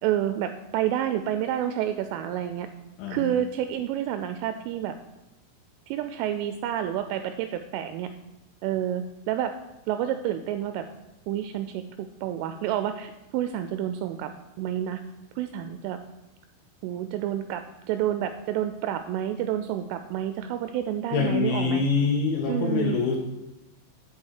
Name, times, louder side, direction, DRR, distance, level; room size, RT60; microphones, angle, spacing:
voice 1, 0.0-2.7 3.1-5.0 5.9-8.1 8.6-9.5 9.9-10.9 11.3-14.3 14.6-15.0 15.4-16.0 16.8-21.8 22.5-23.0, right 11 dB, 85° right, 9 dB, 2.9 m, -29 dB
voice 2, 3.0-3.3 21.1-23.2, left 5 dB, 75° left, -2 dB, 3.5 m, -25 dB
8.6 x 6.2 x 8.1 m, 0.94 s
omnidirectional pair, 5.9 m